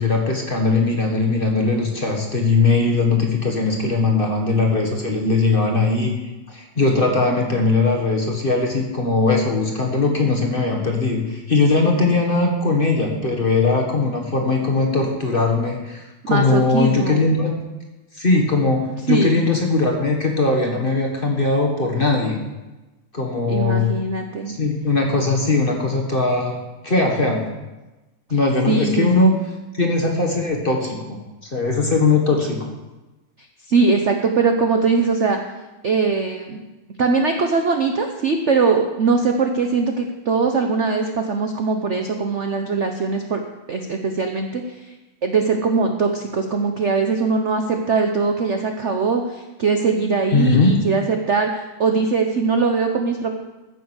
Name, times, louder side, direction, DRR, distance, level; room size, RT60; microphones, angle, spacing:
voice 1, 0.0-6.1 6.5-17.5 18.2-22.4 23.1-23.9 24.5-26.6 26.8-27.4 28.3-29.3 29.8-31.2 31.5-32.6 50.3-50.7, left 3 dB, 30° left, 1 dB, 1.6 m, -20 dB
voice 2, 16.3-17.2 19.1-19.5 23.5-24.5 28.7-29.1 33.7-35.4 35.8-36.6 37.0-43.4 43.7-44.9 45.2-53.3, right 4 dB, 50° right, 4 dB, 0.8 m, -21 dB
14.5 x 7.6 x 6.3 m, 1.1 s
omnidirectional pair, 2.3 m